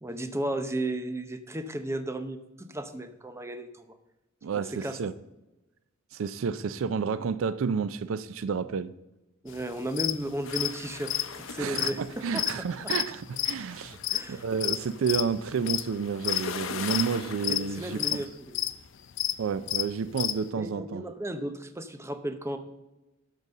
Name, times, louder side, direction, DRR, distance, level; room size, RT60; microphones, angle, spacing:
voice 1, 0.0-4.0 4.5-5.0 9.4-12.9 14.1-14.4 17.5-18.6 20.5-22.6, right 1 dB, 15° right, 0.7 m, -34 dB
voice 2, 4.4-5.1 6.1-8.9 11.6-14.0 14.3-18.2 19.4-21.0, right 6 dB, 75° right, 0.4 m, -30 dB
sound 1, 9.6-9.7 10.0-10.2 10.4-14.8 15.0-15.4 15.7-16.0 16.2-16.6 16.9-17.7 18.0-18.2 18.5-18.7 19.2-19.3 19.6-20.4, left 14 dB, 65° left, 0.5 m, -29 dB
sound 2, 10.4-18.3, left 6 dB, 85° left, 0.8 m, -42 dB
12.0 x 4.0 x 6.6 m
head